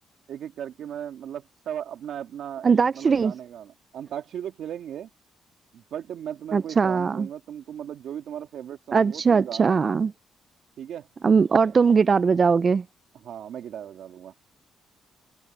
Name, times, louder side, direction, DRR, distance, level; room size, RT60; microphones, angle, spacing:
voice 1, 0.3-5.1 5.7-9.8 10.8-11.1 13.1-14.3, right 9 dB, 70° right, 2.3 m, -37 dB
voice 2, 2.6-3.3 6.5-7.3 8.9-10.1 11.2-12.8, right 5 dB, 40° right, 0.4 m, -20 dB
cardioid pair, 90°, 0 cm